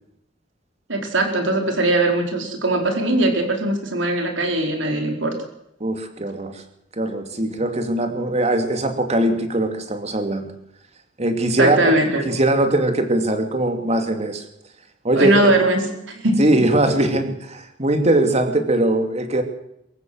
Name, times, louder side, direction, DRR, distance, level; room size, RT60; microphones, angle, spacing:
voice 1, 0.9-5.4 11.6-12.2 15.2-16.4, right 1 dB, 70° right, 4 dB, 4.7 m, -20 dB
voice 2, 5.8-6.6 6.9-10.5 11.2-11.9 12.3-14.4 15.0-15.5 16.4-19.4, right 1 dB, 35° right, 6 dB, 2.7 m, -21 dB
24.0 x 15.0 x 7.8 m, 0.78 s
head